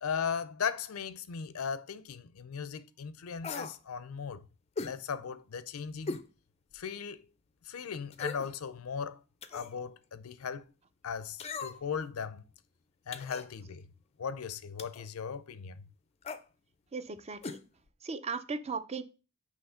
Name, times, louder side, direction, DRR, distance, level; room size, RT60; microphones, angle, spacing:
voice 1, 0.0-4.5 4.8-6.2 6.7-7.2 7.7-9.2 9.5-10.7 11.0-12.4 13.1-13.9 14.2-15.9, left 6 dB, 90° left, 0.5 m, -37 dB
sound 1, 3.4-3.8 4.8-5.0 6.1-6.3 6.8-6.9 8.1-8.5 9.4-9.8 11.4-12.0 13.1-13.5 14.8-15.1 16.2-16.4 17.4-17.6 17.9-18.0, left 4 dB, 30° left, 0.4 m, -39 dB
voice 2, 16.9-17.6 18.0-19.0, right 4 dB, 30° right, 0.4 m, -37 dB
5.7 x 3.1 x 5.6 m
head